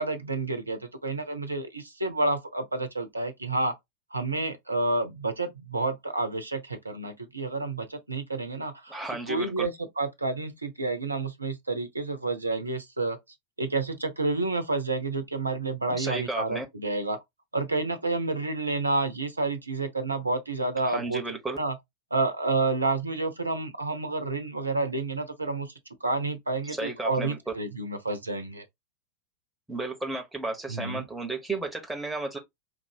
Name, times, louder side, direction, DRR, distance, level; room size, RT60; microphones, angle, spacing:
voice 1, 0.0-3.7 4.1-9.0 9.3-13.2 13.6-17.2 17.5-21.2 21.6-21.7 22.1-25.7 26.0-28.6 30.7-31.1, right 3 dB, 80° right, 0.9 m, -29 dB
voice 2, 8.9-9.7 15.9-16.7 20.8-21.6 26.7-27.4 29.7-32.4, right 3 dB, 5° right, 1.2 m, -33 dB
4.6 x 2.6 x 2.7 m
figure-of-eight pair, 90°, 0 cm